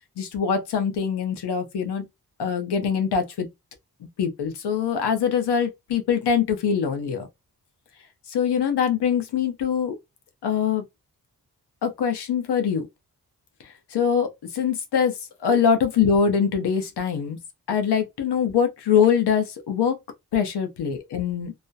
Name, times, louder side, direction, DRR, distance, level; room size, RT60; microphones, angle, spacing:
voice 1, 0.2-2.0 2.4-3.5 4.2-7.3 8.3-10.0 10.4-10.8 11.8-12.9 13.9-17.4 17.7-20.0 20.3-21.5, left 7 dB, 90° left, 0.7 m, -23 dB
2.3 x 2.1 x 2.6 m
cardioid pair, 70°, 39 cm